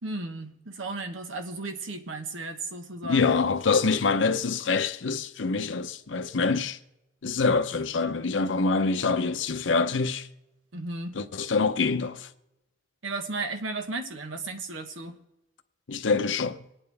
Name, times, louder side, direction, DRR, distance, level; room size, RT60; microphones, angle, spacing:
voice 1, 0.0-3.3 10.7-11.2 13.0-15.2, right 3 dB, 85° right, 1.2 m, -34 dB
voice 2, 3.0-6.8 7.2-10.3 11.1-12.3 15.9-16.7, left 4 dB, 70° left, 0.7 m, -25 dB
25.0 x 9.1 x 3.4 m
head